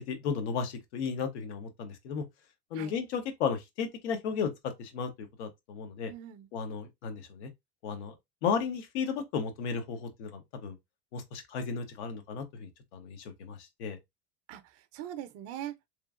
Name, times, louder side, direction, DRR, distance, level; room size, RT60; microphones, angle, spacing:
voice 1, 0.0-2.2 2.7-4.5 4.8-6.1 6.5-7.5 7.8-8.1 8.4-10.8 11.1-14.0, left 6 dB, 80° left, 0.9 m, -34 dB
voice 2, 6.1-6.5 14.5-15.9, right 11 dB, 45° right, 0.5 m, -42 dB
3.0 x 2.4 x 2.4 m
supercardioid pair, 130°, 34 cm